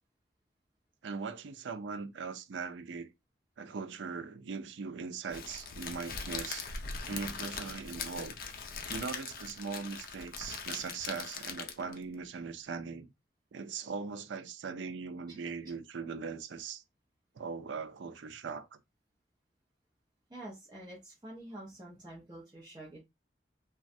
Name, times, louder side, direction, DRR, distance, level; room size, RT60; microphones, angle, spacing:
voice 1, 1.0-3.1 3.6-6.7 7.1-8.4 8.9-13.1 13.5-16.8 17.4-18.7, right 5 dB, 85° right, 0.4 m, -40 dB
Crackle, 5.3-12.0, left 5 dB, 50° left, 0.4 m, -41 dB
voice 2, 20.3-23.0, right 1 dB, 20° right, 0.7 m, -47 dB
3.1 x 2.3 x 2.6 m
head